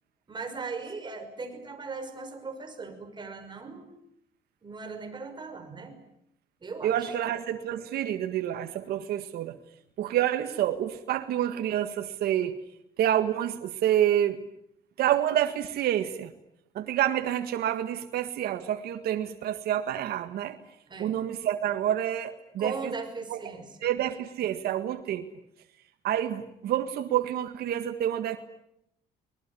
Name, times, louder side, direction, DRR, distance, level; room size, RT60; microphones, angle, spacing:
voice 1, 0.3-4.0 4.6-6.0 6.6-7.1 20.9-21.2 22.6-23.7, right 4 dB, 25° right, 6 dB, 5.8 m, -38 dB
voice 2, 6.8-9.6 10.0-12.5 13.0-14.4 15.0-16.3 16.8-20.6 21.0-22.9 23.3-23.4 23.8-25.3 26.0-28.4, right 11 dB, 70° right, 8 dB, 1.7 m, -28 dB
25.0 x 20.5 x 9.9 m, 0.77 s
cardioid pair, 110°, 17 cm